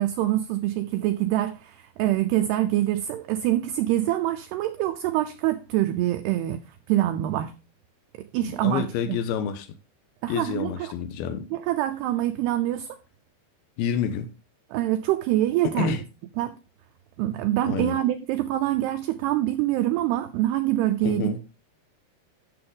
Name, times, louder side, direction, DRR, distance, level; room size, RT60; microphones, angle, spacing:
voice 1, 0.0-6.6 6.9-7.5 8.2-9.2 10.2-10.9 11.5-12.9 14.7-16.0 16.4-16.6 17.2-21.3, right 14 dB, 85° right, 2.3 m, -25 dB
voice 2, 8.4-9.7 10.3-11.5 13.8-14.3 15.6-16.0 17.7-18.0 21.0-21.4, left 8 dB, 85° left, 2.3 m, -28 dB
10.5 x 6.8 x 3.7 m
omnidirectional pair, 5.4 m